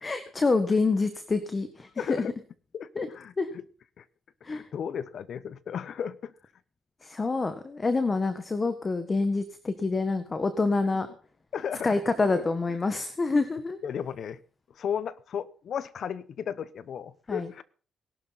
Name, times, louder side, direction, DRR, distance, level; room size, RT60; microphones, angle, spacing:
voice 1, 0.0-1.9 2.9-3.1 3.4-3.5 4.4-4.7 7.0-11.1 11.8-13.8 17.3-17.5, left 3 dB, 30° left, 10 dB, 1.5 m, -27 dB
voice 2, 2.0-2.3 2.7-3.6 4.0-4.1 4.5-6.3 11.5-12.3 13.8-14.4 14.8-17.6, left 8 dB, 60° left, 17 dB, 1.0 m, -34 dB
20.0 x 12.0 x 4.2 m, 0.41 s
cardioid pair, 90°, 0 cm